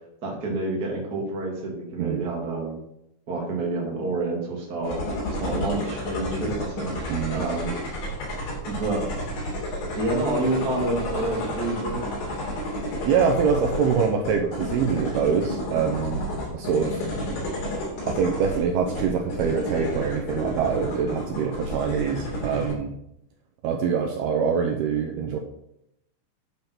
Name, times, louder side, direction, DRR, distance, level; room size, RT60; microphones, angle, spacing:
voice 1, 0.2-2.8 3.3-7.7 8.6-9.0 9.9-12.0, right 2 dB, 35° right, -2 dB, 1.6 m, -28 dB
sound 1, 4.8-22.7, equal, 50° left, 4.1 m, -31 dB
voice 2, 7.1-7.5 13.1-16.2 16.5-17.1 18.1-22.9 23.6-25.4, right 6 dB, 90° right, 2 dB, 2.2 m, -24 dB
8.9 x 5.6 x 6.0 m, 0.79 s
omnidirectional pair, 5.6 m